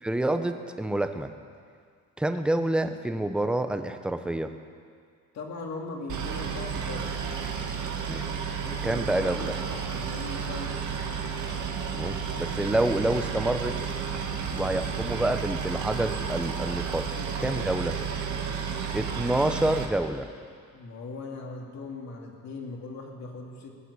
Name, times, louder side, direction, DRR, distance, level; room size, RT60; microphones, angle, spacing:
voice 1, 0.0-1.3 2.2-4.5 8.1-8.3 8.8-9.4 11.9-13.7 14.5-17.1 17.4-18.0 18.9-20.3, right 1 dB, 5° right, 8 dB, 0.7 m, -27 dB
voice 2, 5.3-7.2 8.6-10.8 17.1-18.1 20.7-23.8, left 3 dB, 60° left, 0 dB, 2.7 m, -40 dB
Boat Water vehicle, 6.1-19.9, right 6 dB, 75° right, 1.9 m, -32 dB
18.5 x 9.1 x 8.3 m, 2.1 s
cardioid pair, 135°, 31 cm